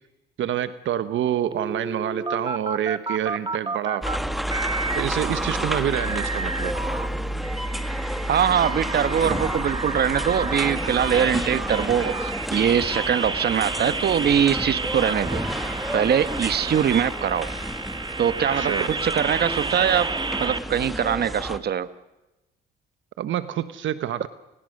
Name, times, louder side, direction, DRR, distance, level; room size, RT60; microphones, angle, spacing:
voice 1, 0.4-4.1 4.9-6.7 18.6-18.9 23.2-24.3, right 11 dB, 75° right, 13 dB, 1.1 m, -27 dB
sound 1, 1.5-4.2 4.5-7.1 7.4-20.6, right 3 dB, 25° right, 1.4 m, -31 dB
sound 2, 4.0-21.6, equal, ahead, 1.7 m, -30 dB
voice 2, 8.3-15.4 15.9-17.5 18.2-18.7 19.0-20.1 20.4-21.9, right 8 dB, 55° right, 13 dB, 1.2 m, -22 dB
29.5 x 19.0 x 6.5 m, 0.99 s
cardioid pair, 90°, 20 cm